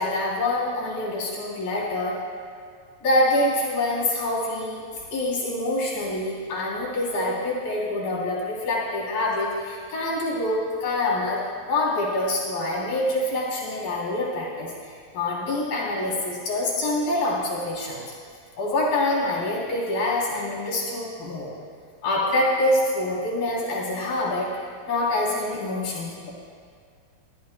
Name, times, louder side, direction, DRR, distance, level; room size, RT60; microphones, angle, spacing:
voice 1, 0.0-2.1 3.0-4.8 5.1-11.4 11.7-18.0 18.6-21.5 22.0-26.3, left 1 dB, 85° left, -5 dB, 5.0 m, -26 dB
24.0 x 14.0 x 2.2 m, 2.2 s
omnidirectional pair, 3.9 m